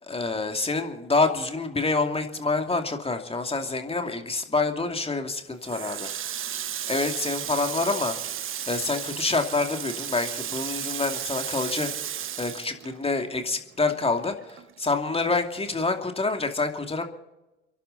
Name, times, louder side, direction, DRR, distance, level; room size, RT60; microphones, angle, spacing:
voice 1, 0.1-6.1 6.9-8.2 8.7-12.1 12.4-17.0, left 3 dB, 15° left, 5 dB, 2.6 m, -27 dB
Water tap faucet, 5.6-13.5 13.8-15.1, right 10 dB, 35° right, 1.0 m, -34 dB
30.0 x 11.5 x 4.1 m, 1.0 s
hypercardioid pair, 65°, 34 cm